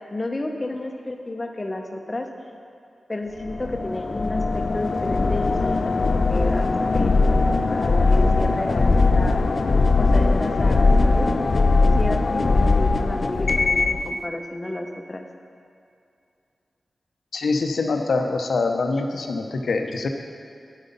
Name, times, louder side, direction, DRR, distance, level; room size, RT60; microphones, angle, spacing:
voice 1, 0.1-2.3 3.1-9.4 10.0-11.3 12.0-15.3, left 2 dB, 25° left, 3 dB, 0.9 m, -31 dB
sound 1, 3.4-14.1, left 3 dB, 50° left, 0.4 m, -20 dB
voice 2, 17.3-20.1, left 3 dB, 80° left, 4 dB, 0.8 m, -24 dB
10.5 x 7.9 x 5.4 m, 2.5 s
wide cardioid pair, 120°, 0 cm